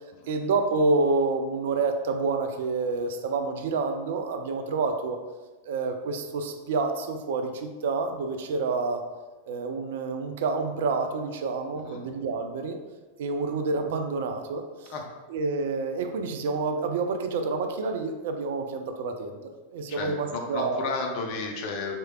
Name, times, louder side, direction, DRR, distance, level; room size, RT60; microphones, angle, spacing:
voice 1, 0.3-5.2 5.7-9.0 9.5-12.8 13.2-14.9 15.3-19.4 19.7-20.9, right 3 dB, 55° right, 6 dB, 0.3 m, -28 dB
voice 2, 19.9-22.0, left 4 dB, 45° left, 2 dB, 0.6 m, -33 dB
4.4 x 3.1 x 2.3 m, 1.2 s
figure-of-eight pair, 90°, 0 cm